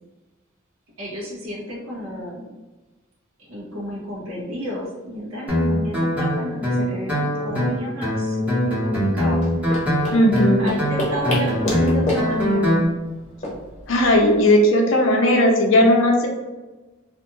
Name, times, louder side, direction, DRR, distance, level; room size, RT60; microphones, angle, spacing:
voice 1, 1.0-2.4 3.4-8.5 8.8-9.8 10.6-12.7, equal, 80° right, -3 dB, 0.7 m, -32 dB
Guitar, 5.5-12.9, equal, 5° right, 0.8 m, -22 dB
sound 1, 9.3-14.5, left 1 dB, 35° left, 0.7 m, -30 dB
voice 2, 10.1-10.6 13.9-16.3, left 1 dB, 65° left, 1 dB, 0.5 m, -16 dB
2.4 x 2.2 x 2.9 m, 1.2 s
head